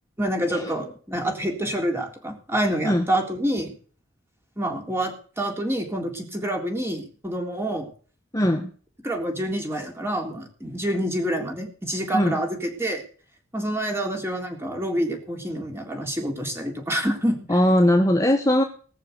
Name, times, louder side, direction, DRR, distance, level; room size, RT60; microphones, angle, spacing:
voice 1, 0.2-3.8 4.6-7.9 9.0-13.0 13.5-17.6, right 1 dB, 10° right, 2 dB, 3.6 m, -27 dB
voice 2, 8.3-8.7 12.1-12.4 17.5-18.6, left 1 dB, 15° left, 3 dB, 1.3 m, -20 dB
19.5 x 6.6 x 8.1 m, 0.43 s
head